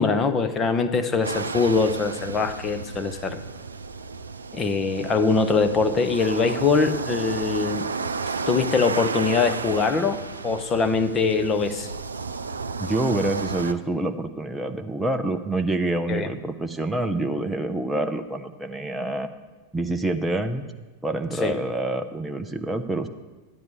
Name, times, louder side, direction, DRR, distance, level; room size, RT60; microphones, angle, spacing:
voice 1, 0.0-3.4 4.5-7.9 8.5-11.9 16.1-16.3 21.4-21.6, left 4 dB, 25° left, 10 dB, 0.9 m, -23 dB
sound 1, 1.2-13.7, right 4 dB, 75° right, 0.5 m, -32 dB
voice 2, 12.8-19.3 19.7-20.6 21.0-23.1, right 2 dB, 5° right, 6 dB, 0.7 m, -27 dB
12.5 x 10.5 x 5.3 m, 1.2 s
figure-of-eight pair, 90°, 0 cm